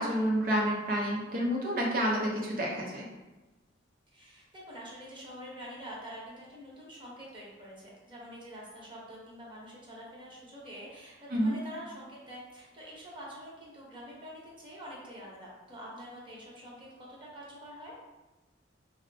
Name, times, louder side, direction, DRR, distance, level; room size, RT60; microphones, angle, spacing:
voice 1, 0.0-3.1 11.3-11.6, equal, 50° right, -3 dB, 0.6 m, -29 dB
voice 2, 4.1-18.0, equal, 25° right, -5 dB, 0.9 m, -46 dB
4.0 x 2.1 x 2.6 m, 1.1 s
head